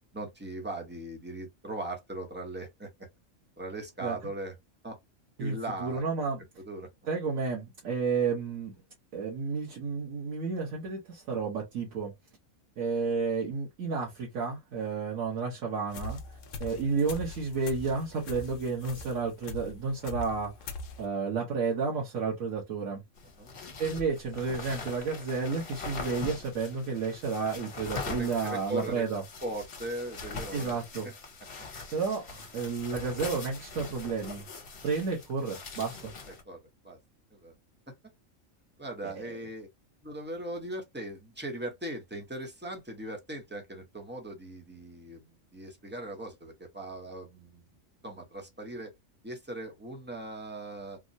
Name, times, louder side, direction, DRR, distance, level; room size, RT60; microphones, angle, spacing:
voice 1, 0.1-3.1 3.6-4.5 4.8-5.0 5.4-6.0 6.6-6.9 23.4-23.5 28.1-29.1 29.4-30.8 36.4-37.0 37.3-37.5 37.9-38.0 38.8-39.7 40.0-47.7 48.0-48.9 49.2-51.0, right 1 dB, 10° right, 0.6 m, -39 dB
voice 2, 5.4-6.4 7.1-8.7 9.1-12.1 12.8-23.0 23.8-29.2 30.5-31.1 31.9-34.5 34.8-36.1 39.0-39.1, right 5 dB, 85° right, 1.4 m, -31 dB
sound 1, 15.9-21.1, left 3 dB, 75° left, 1.0 m, -41 dB
sound 2, 23.2-36.4, left 4 dB, 55° left, 1.2 m, -42 dB
3.6 x 2.0 x 2.6 m
omnidirectional pair, 1.4 m